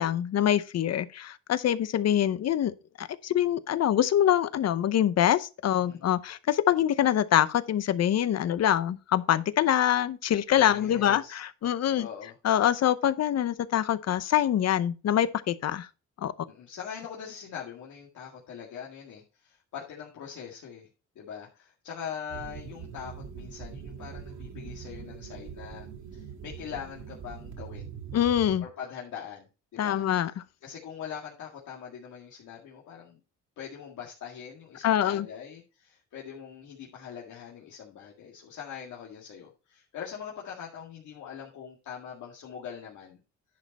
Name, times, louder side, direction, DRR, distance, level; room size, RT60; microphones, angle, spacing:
voice 1, 0.0-2.7 3.0-12.1 12.4-15.9 16.2-16.3 28.1-28.6 29.8-30.3 34.8-35.3, left 11 dB, 60° left, 0.8 m, -25 dB
voice 2, 10.6-11.4 12.0-12.4 16.5-20.9 21.2-25.9 26.1-27.9 28.6-30.3 30.6-33.2 33.6-43.2, left 8 dB, 75° left, 2.0 m, -42 dB
sound 1, 22.3-28.6, right 7 dB, 70° right, 2.0 m, -42 dB
10.5 x 5.2 x 4.1 m
cardioid pair, 90°, 30 cm